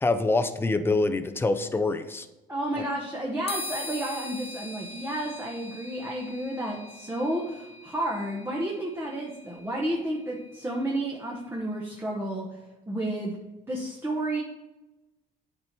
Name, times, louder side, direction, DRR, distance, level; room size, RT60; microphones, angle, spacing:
voice 1, 0.0-2.3, left 3 dB, 15° left, 8 dB, 0.6 m, -25 dB
voice 2, 2.5-12.6 12.9-13.4 13.7-14.4, right 1 dB, 15° right, -2 dB, 1.0 m, -31 dB
sound 1, 3.5-11.1, left 2 dB, 35° left, 1.1 m, -42 dB
8.5 x 4.4 x 4.5 m, 1.1 s
cardioid pair, 110°, 17 cm